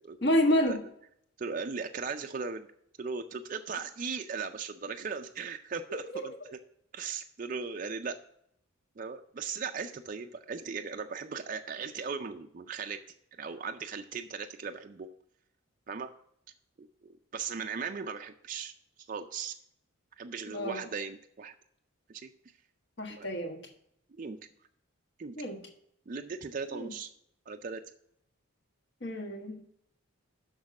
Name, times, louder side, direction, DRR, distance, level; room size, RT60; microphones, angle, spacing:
voice 1, 0.2-0.8 6.1-6.3 20.5-20.8 23.0-23.6 25.4-25.6 26.7-26.9 29.0-29.6, left 1 dB, 55° left, 4 dB, 1.3 m, -29 dB
voice 2, 1.4-2.7 3.0-6.3 6.9-8.2 9.0-13.0 13.4-15.1 15.9-16.1 16.8-18.7 19.1-19.5 20.2-21.5 22.1-22.3 23.1-23.3 24.2-24.4 25.2-25.4 26.1-27.1 27.5-27.8, right 5 dB, 40° right, 5 dB, 0.4 m, -38 dB
6.4 x 6.1 x 7.0 m, 0.71 s
head